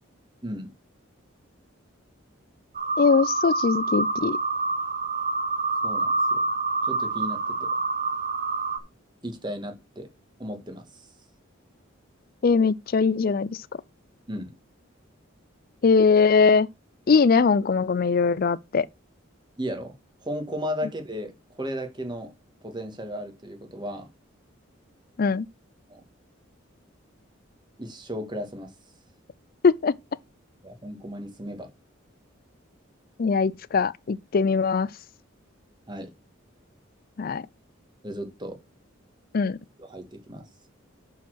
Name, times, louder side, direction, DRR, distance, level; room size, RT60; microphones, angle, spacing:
sound 1, 2.7-8.8, right 3 dB, 40° right, 1.0 m, -27 dB
voice 1, 3.0-4.4 12.4-13.6 15.8-16.7 17.1-18.9 25.2-25.5 29.6-30.0 33.2-34.9 37.2-37.4 39.3-39.6, left 5 dB, 45° left, 0.4 m, -21 dB
voice 2, 5.8-6.4 6.8-7.7 9.2-10.1 10.4-10.8 14.3-14.5 19.6-19.9 20.2-22.3 22.6-24.1 25.9-26.0 27.8-28.7 30.6-31.7 35.9-36.1 38.0-38.6 39.8-40.4, equal, 20° right, 1.7 m, -35 dB
6.4 x 5.7 x 6.2 m
head